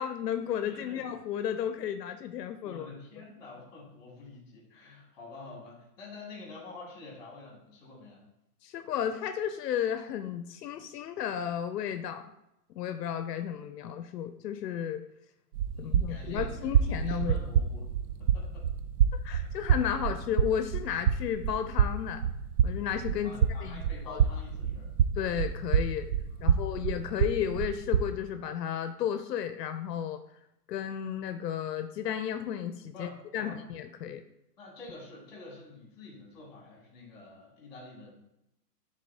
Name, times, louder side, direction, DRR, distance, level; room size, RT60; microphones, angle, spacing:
voice 1, 0.0-2.9 8.6-12.2 12.8-15.0 15.8-17.4 19.2-22.2 22.6-23.3 23.6-23.8 24.1-24.2 25.2-26.1 26.4-30.2 30.7-34.2, left 9 dB, 85° left, 8 dB, 0.6 m, -33 dB
voice 2, 0.6-1.1 2.6-8.2 15.7-17.9 18.2-18.7 19.4-19.5 23.2-24.9 26.3-27.1 32.9-33.6 34.6-38.1, left 3 dB, 25° left, -3 dB, 2.4 m, -48 dB
sound 1, 15.5-28.0, right 8 dB, 70° right, 0.5 m, -28 dB
11.0 x 3.7 x 2.7 m, 0.85 s
hypercardioid pair, 180°, 47 cm